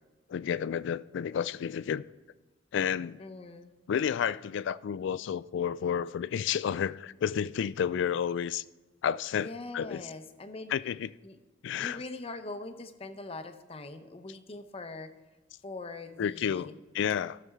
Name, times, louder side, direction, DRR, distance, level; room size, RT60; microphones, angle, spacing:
voice 1, 0.3-2.0 2.7-3.2 3.9-8.6 9.0-10.1 10.7-11.1 11.6-12.0 16.2-17.4, left 8 dB, 65° left, 0.3 m, -31 dB
voice 2, 3.2-3.7 9.3-10.7 11.2-11.4 11.8-15.1 15.6-16.7, left 2 dB, 30° left, 0.7 m, -42 dB
14.0 x 6.8 x 3.6 m
head